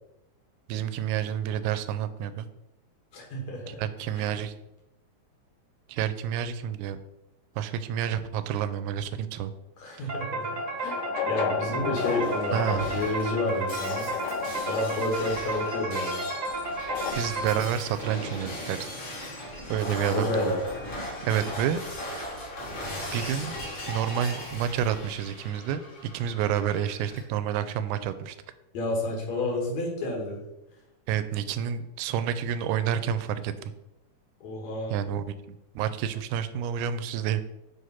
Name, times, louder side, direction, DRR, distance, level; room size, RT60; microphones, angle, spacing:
voice 1, 0.7-2.5 3.7-4.5 5.9-7.0 7.6-9.5 10.0-10.2 12.5-12.9 17.2-18.9 19.7-20.3 21.2-22.2 22.7-22.8 23.1-23.6 23.9-28.4 31.1-33.7 34.9-37.4, right 9 dB, 85° right, 12 dB, 2.0 m, -29 dB
voice 2, 3.1-3.8 4.1-4.3 9.8-10.5 10.8-11.0 11.3-14.1 14.7-16.2 20.1-20.6 28.7-30.4 34.4-34.9, left 2 dB, 70° left, -1 dB, 2.8 m, -30 dB
sound 1, 10.1-17.9, right 2 dB, 60° right, 0.8 m, -33 dB
sound 2, 10.5-17.1, left 9 dB, 90° left, 1.4 m, -35 dB
Shatter, 11.6-27.2, left 1 dB, 45° left, 2.5 m, -38 dB
7.6 x 3.2 x 5.6 m, 0.91 s
omnidirectional pair, 3.4 m